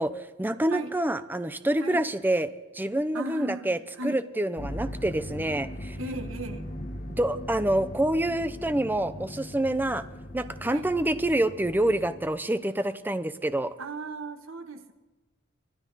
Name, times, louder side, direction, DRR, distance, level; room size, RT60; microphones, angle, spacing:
voice 1, 0.0-3.8 4.0-6.0 7.2-10.0 10.3-13.7, right 1 dB, 10° right, 11 dB, 0.6 m, -27 dB
voice 2, 3.1-4.2 6.0-6.7 10.6-10.9 13.8-14.9, right 2 dB, 80° right, 8 dB, 1.3 m, -37 dB
sound 1, 4.6-12.3, left 1 dB, 45° left, 1.4 m, -39 dB
25.5 x 10.5 x 4.1 m, 1.2 s
head